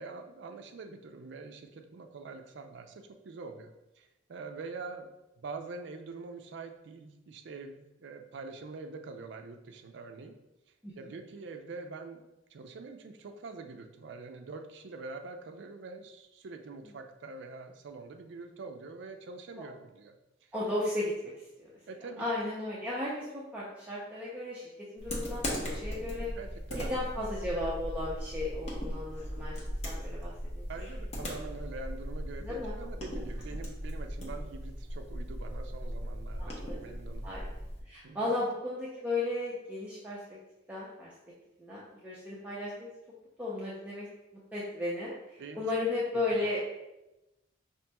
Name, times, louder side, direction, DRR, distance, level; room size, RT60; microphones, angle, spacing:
voice 1, 0.0-5.1 5.4-10.4 11.0-12.2 12.5-20.2 20.4-20.5 21.9-22.2 26.3-27.0 30.7-37.3 38.0-38.3 45.4-45.9 46.1-46.2, right 3 dB, 65° right, 5 dB, 0.4 m, -45 dB
voice 2, 20.5-21.3 21.6-21.7 22.2-24.6 24.9-26.3 26.7-30.7 32.4-32.7 36.4-36.8 37.2-37.5 37.9-40.2 40.7-41.1 41.6-42.9 43.4-44.1 44.5-46.6, left 2 dB, 10° right, -8 dB, 0.5 m, -35 dB
sound 1, 25.0-37.8, equal, 35° left, 0.8 m, -38 dB
5.0 x 2.9 x 2.2 m, 0.97 s
head